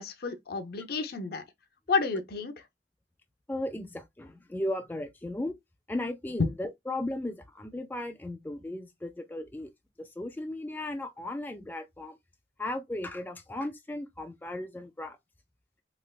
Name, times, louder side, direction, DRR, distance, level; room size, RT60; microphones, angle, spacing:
voice 1, 0.0-1.4 1.9-2.5 6.4-6.5, left 4 dB, 60° left, 0.6 m, -30 dB
voice 2, 3.5-5.6 5.9-9.7 10.0-12.2 12.6-15.2, left 1 dB, 10° left, 0.3 m, -36 dB
3.3 x 2.9 x 2.3 m
head